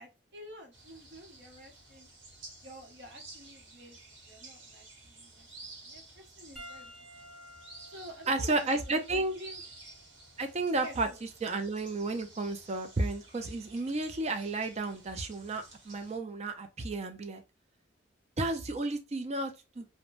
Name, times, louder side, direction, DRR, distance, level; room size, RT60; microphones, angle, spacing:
voice 1, 0.0-2.1 2.6-5.5 5.8-7.3 7.9-9.6 10.8-11.2, equal, 65° right, 0.9 m, -50 dB
sound 1, 0.7-16.2, right 2 dB, 85° right, 1.1 m, -53 dB
Piano, 6.6-11.2 12.2-12.3 14.3-14.4, equal, 5° right, 1.1 m, -53 dB
voice 2, 8.3-9.3 10.4-11.1 11.4-17.4 18.4-19.9, right 2 dB, 35° right, 0.5 m, -32 dB
3.0 x 2.1 x 2.5 m
head